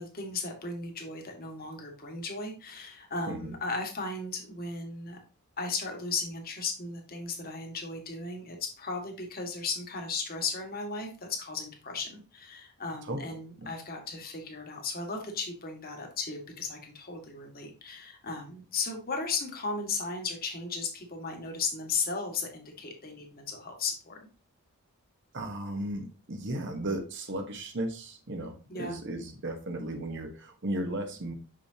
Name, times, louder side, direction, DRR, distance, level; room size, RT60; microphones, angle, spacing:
voice 1, 0.0-5.2 5.6-24.3 28.7-29.0, left 4 dB, 45° left, 3 dB, 1.7 m, -36 dB
voice 2, 25.3-31.3, right 1 dB, 55° right, 5 dB, 1.1 m, -35 dB
6.3 x 5.9 x 2.8 m, 0.33 s
head